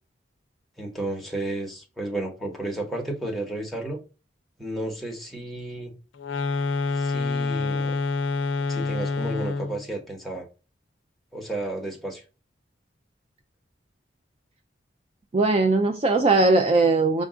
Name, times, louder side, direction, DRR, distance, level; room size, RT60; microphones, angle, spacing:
voice 1, 0.8-4.0 4.6-5.9 6.9-8.0 8.7-10.4 11.3-12.2, right 1 dB, ahead, 1.0 m, -32 dB
sound 1, 6.2-9.8, left 4 dB, 85° left, 0.4 m, -27 dB
voice 2, 15.3-17.2, right 3 dB, 30° right, 0.3 m, -19 dB
5.2 x 2.4 x 3.6 m
head